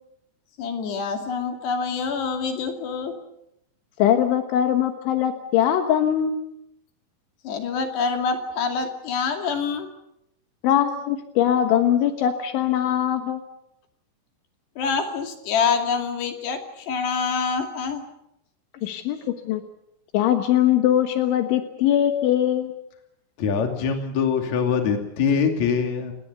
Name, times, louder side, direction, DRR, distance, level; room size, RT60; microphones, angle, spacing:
voice 1, 0.6-3.2 7.4-9.9 14.8-18.0, left 5 dB, 60° left, 4 dB, 4.4 m, -26 dB
voice 2, 4.0-6.4 10.6-13.4 18.8-19.2 19.5-19.6 20.1-22.7, left 10 dB, 75° left, 6 dB, 3.6 m, -21 dB
voice 3, 23.4-26.1, left 6 dB, 45° left, 4 dB, 3.4 m, -23 dB
29.5 x 18.5 x 7.0 m, 0.81 s
omnidirectional pair, 5.6 m